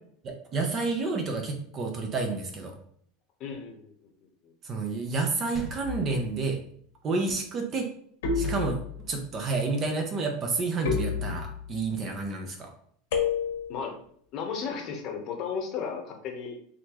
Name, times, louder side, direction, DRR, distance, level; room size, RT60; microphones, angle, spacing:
voice 1, 0.2-2.7 4.6-6.6 7.0-7.9 8.3-8.8 9.1-12.7, right 3 dB, 30° right, 3 dB, 0.7 m, -30 dB
voice 2, 3.4-3.9 13.7-14.0 14.3-16.6, left 6 dB, 40° left, 3 dB, 0.9 m, -34 dB
sound 1, 5.5-6.5 8.4-9.3, equal, 10° left, 0.8 m, -42 dB
sound 2, 5.8-6.4 8.2-9.2 10.8-11.8 13.1-13.8, left 6 dB, 85° left, 1.2 m, -30 dB
4.0 x 3.1 x 2.9 m, 0.64 s
supercardioid pair, 155°, 0 cm